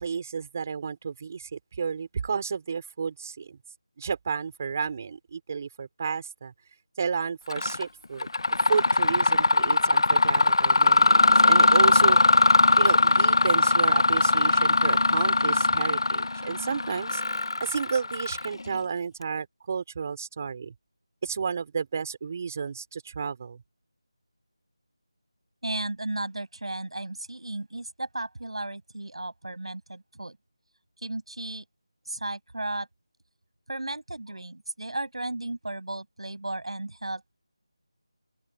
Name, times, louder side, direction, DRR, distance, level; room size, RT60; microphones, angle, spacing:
voice 1, 0.0-3.6 4.0-6.5 7.0-8.3 8.7-12.2 12.8-17.2 17.6-20.7 21.2-23.6, right 6 dB, 30° right, 4.9 m, -32 dB
Mechanisms, 7.5-7.8 8.2-18.8, left 3 dB, 60° left, 0.8 m, -21 dB
voice 2, 25.6-30.4 31.0-31.7 32.1-32.9 33.7-37.3, right 2 dB, 75° right, 7.9 m, -34 dB
open air
figure-of-eight pair, 170°, 3 cm